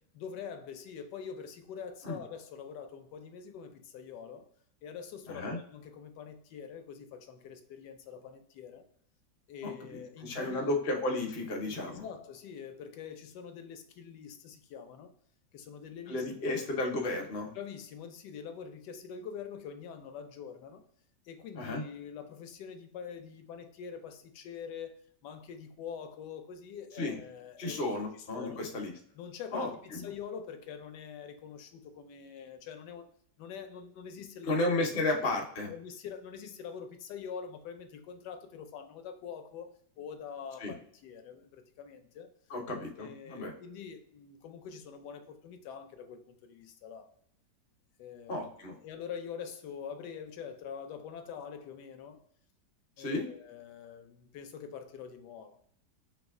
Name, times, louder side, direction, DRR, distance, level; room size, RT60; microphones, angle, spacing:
voice 1, 0.1-4.5 4.8-8.8 9.5-10.7 11.9-15.1 15.5-16.7 17.5-20.8 21.2-27.8 28.3-28.6 29.1-33.1 33.4-34.6 35.7-42.3 43.0-47.1 48.0-48.5 48.8-52.2 53.0-55.6, left 7 dB, 80° left, 1.2 m, -45 dB
voice 2, 5.3-5.6 9.6-12.0 16.1-17.5 21.5-21.8 27.0-27.2 27.6-28.9 29.5-30.0 34.4-35.7 40.6-40.7 42.5-43.5 48.3-48.8 53.0-53.3, left 2 dB, 45° left, 0.8 m, -33 dB
3.3 x 3.1 x 3.6 m
omnidirectional pair, 1.8 m